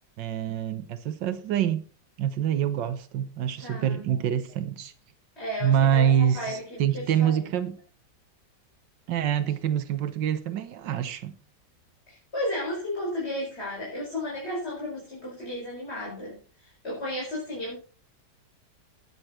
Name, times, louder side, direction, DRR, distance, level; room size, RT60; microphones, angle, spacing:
voice 1, 0.2-1.8 2.2-4.9 5.6-7.8 9.1-11.3, right 9 dB, 90° right, 1.7 m, -26 dB
voice 2, 3.6-4.1 5.4-7.5 12.3-17.8, left 1 dB, 35° left, 5.4 m, -34 dB
13.0 x 9.9 x 4.4 m
omnidirectional pair, 1.9 m